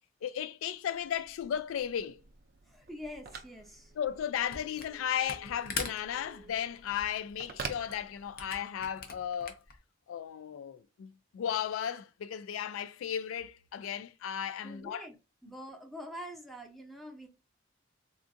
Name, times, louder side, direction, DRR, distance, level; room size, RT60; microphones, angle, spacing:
voice 1, 0.2-2.2 4.0-9.6 10.1-15.1, left 9 dB, 85° left, 0.3 m, -35 dB
Telephone, 0.8-8.7, right 5 dB, 50° right, 0.4 m, -48 dB
voice 2, 2.7-3.9 14.6-15.2 15.4-17.3, equal, ahead, 0.6 m, -45 dB
Camera, 4.5-5.0 5.2-9.8, left 5 dB, 50° left, 0.7 m, -41 dB
3.7 x 2.4 x 2.5 m
head